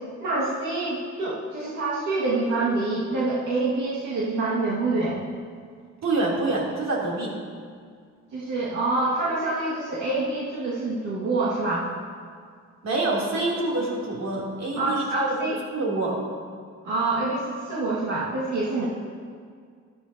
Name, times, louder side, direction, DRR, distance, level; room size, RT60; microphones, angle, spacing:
voice 1, 0.0-5.2 8.3-11.9 14.8-15.6 16.8-18.8, right 2 dB, 90° right, -8 dB, 1.9 m, -26 dB
voice 2, 6.0-7.3 12.8-15.3 15.7-16.2, right 2 dB, 65° right, -4 dB, 3.1 m, -26 dB
13.0 x 13.0 x 2.8 m, 2.1 s
cardioid pair, 90°, 30 cm